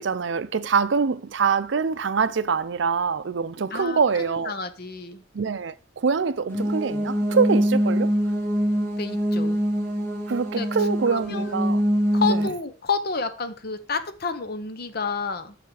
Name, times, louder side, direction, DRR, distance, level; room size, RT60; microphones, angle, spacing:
voice 1, 0.0-4.5 5.3-8.1 10.3-11.8, right 5 dB, 65° right, 0.5 m, -24 dB
voice 2, 3.7-5.2 9.0-9.6 10.6-10.7 11.1-11.5 12.1-15.6, left 4 dB, 50° left, 0.8 m, -30 dB
sound 1, 6.5-12.5, equal, 15° left, 1.8 m, -24 dB
6.7 x 5.9 x 4.8 m
head